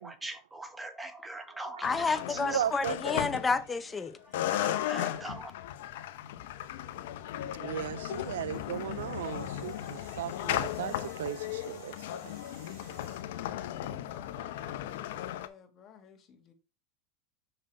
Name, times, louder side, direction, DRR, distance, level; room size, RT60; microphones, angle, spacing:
voice 1, 0.0-2.7 4.1-5.5, right 2 dB, 10° right, 1.2 m, -42 dB
sound 1, 1.8-4.0 4.3-15.5, left 12 dB, 75° left, 0.6 m, -36 dB
voice 2, 1.8-4.2, left 4 dB, 20° left, 0.8 m, -30 dB
voice 3, 2.4-3.0 7.6-12.3, right 11 dB, 85° right, 0.3 m, -36 dB
gas pipe, 8.0-13.2, right 4 dB, 65° right, 2.5 m, -56 dB
voice 4, 13.2-16.5, left 7 dB, 40° left, 1.9 m, -54 dB
6.5 x 5.8 x 3.3 m
hypercardioid pair, 100°, 0 cm